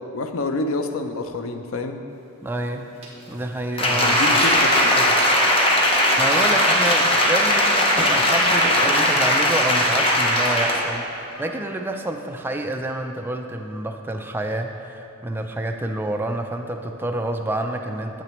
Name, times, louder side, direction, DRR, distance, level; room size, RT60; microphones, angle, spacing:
voice 1, 0.1-2.0 3.9-5.2, left 2 dB, 70° left, 7 dB, 0.5 m, -28 dB
voice 2, 2.4-2.9 3.3-4.4 6.2-18.2, right 1 dB, 10° right, 4 dB, 0.4 m, -28 dB
sound 1, 3.0-5.6 5.9-7.6 7.9-8.2 8.6-9.5 9.8-10.6, right 1 dB, 30° right, 1.4 m, -34 dB
Applause, 3.8-10.9 11.3-11.4, left 1 dB, 25° left, 0.8 m, -19 dB
8.8 x 7.7 x 3.0 m, 3.0 s
head